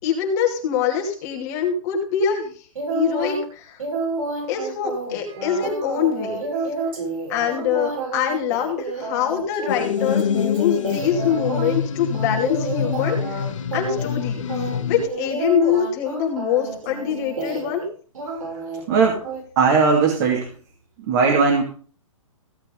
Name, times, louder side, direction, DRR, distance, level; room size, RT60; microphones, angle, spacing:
voice 1, 0.0-2.5 2.9-3.8 4.5-6.4 7.3-13.5 13.7-14.4 14.9-17.8, left 8 dB, 30° left, 1 dB, 2.6 m, -24 dB
sound 1, 2.7-3.4 3.8-11.8 12.1-13.4 13.7-14.2 14.5-17.8 18.1-18.8 19.2-19.4, right 3 dB, 85° right, 7.3 m, -30 dB
sound 2, 9.7-15.1, left 7 dB, 65° left, 1.7 m, -25 dB
voice 2, 18.9-19.2 19.6-20.4 21.1-21.6, right 5 dB, 35° right, -1 dB, 2.5 m, -17 dB
16.0 x 8.0 x 3.9 m, 0.41 s
hypercardioid pair, 160°, 17 cm